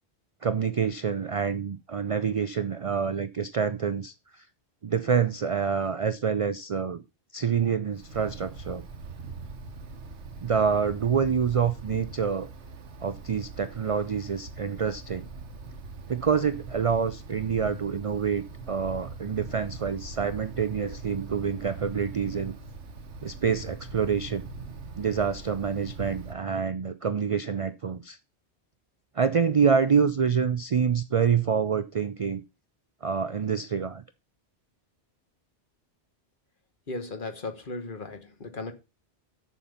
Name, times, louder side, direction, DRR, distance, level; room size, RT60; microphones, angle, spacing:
voice 1, 0.4-4.4 4.8-7.0 7.3-8.9 10.4-12.5 13.0-15.3 16.1-22.5 23.2-24.5 25.0-28.2 29.2-32.4 33.0-34.0, right 6 dB, 50° right, 0.4 m, -27 dB
Wind, 7.9-26.3, right 3 dB, 90° right, 1.3 m, -42 dB
voice 2, 36.9-38.7, left 3 dB, 50° left, 1.4 m, -36 dB
7.1 x 6.9 x 5.6 m
omnidirectional pair, 1.1 m